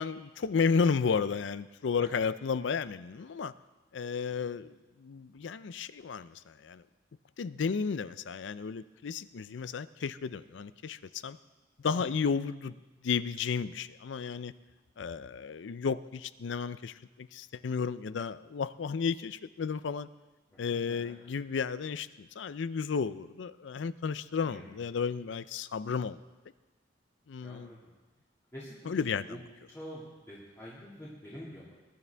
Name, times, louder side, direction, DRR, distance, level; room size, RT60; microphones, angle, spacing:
voice 1, 0.0-3.5 3.9-6.8 7.4-11.4 11.8-12.7 13.0-14.5 15.0-20.1 20.6-26.2 27.3-27.7 28.8-29.4, left 5 dB, 70° left, 16 dB, 0.4 m, -33 dB
voice 2, 20.5-21.0 24.5-24.6 27.4-27.9 28.5-29.4 29.7-31.7, equal, 15° left, -8 dB, 2.0 m, -46 dB
20.5 x 11.0 x 3.4 m, 1.2 s
head